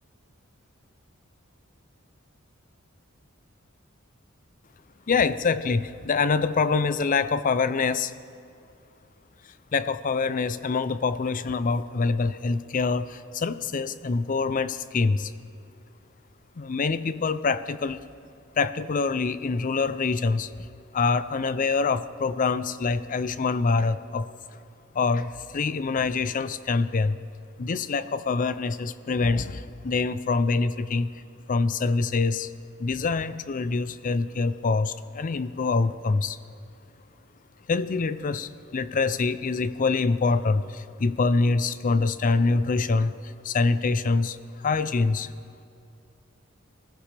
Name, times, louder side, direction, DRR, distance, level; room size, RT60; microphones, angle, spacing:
voice 1, 5.1-8.1 9.7-15.3 16.6-18.1 18.6-20.5 20.9-24.3 24.9-27.2 27.6-31.1 31.5-32.5 32.8-36.4 37.7-43.1 43.4-44.4 44.6-45.3, left 4 dB, 40° left, 14 dB, 0.5 m, -25 dB
20.0 x 15.0 x 3.4 m, 2.6 s
head